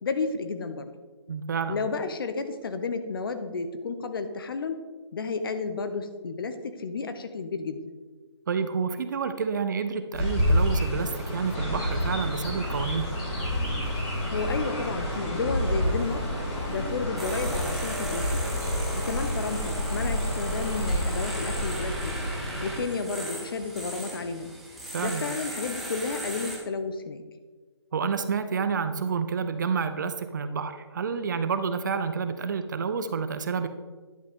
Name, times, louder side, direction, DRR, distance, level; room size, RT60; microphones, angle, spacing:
voice 1, 0.0-0.9 1.7-4.8 5.1-7.8 14.3-16.3 16.7-18.3 18.9-22.2 22.6-24.5 25.0-27.2, left 4 dB, 50° left, 9 dB, 0.8 m, -32 dB
voice 2, 1.3-1.8 8.5-13.1 24.9-25.3 27.9-33.7, right 5 dB, 40° right, 10 dB, 0.5 m, -29 dB
Chirp tweet, 10.1-22.8, equal, 20° left, 2.1 m, -29 dB
sound 1, 17.2-26.6, right 1 dB, ahead, 0.6 m, -37 dB
10.5 x 6.2 x 3.6 m, 1.4 s
hypercardioid pair, 160°, 15 cm